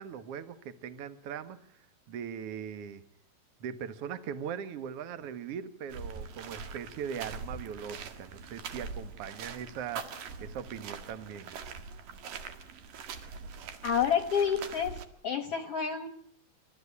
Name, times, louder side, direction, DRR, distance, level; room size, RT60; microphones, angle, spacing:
voice 1, 0.0-1.8 2.1-3.0 3.6-11.5, right 8 dB, 55° right, 12 dB, 2.0 m, -40 dB
sound 1, 5.9-15.0, right 5 dB, 80° right, 3.6 m, -43 dB
voice 2, 13.8-15.0 15.2-16.1, left 7 dB, 60° left, 10 dB, 1.7 m, -28 dB
28.5 x 14.5 x 9.8 m, 0.65 s
omnidirectional pair, 3.8 m